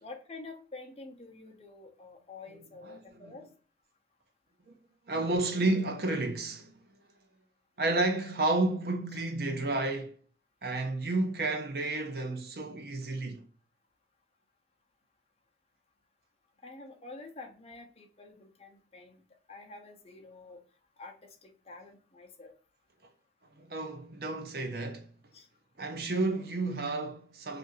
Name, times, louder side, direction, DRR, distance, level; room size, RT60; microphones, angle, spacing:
voice 1, 0.0-3.5 16.6-19.2 19.5-20.6 21.0-22.5 25.3-25.5, left 3 dB, 35° left, 0.6 m, -48 dB
voice 2, 2.8-3.3 4.7-4.8 5.1-6.8 7.8-10.1 10.6-13.4 23.6-25.1 25.8-27.6, right 2 dB, 60° right, 0.6 m, -31 dB
2.7 x 2.5 x 4.1 m
head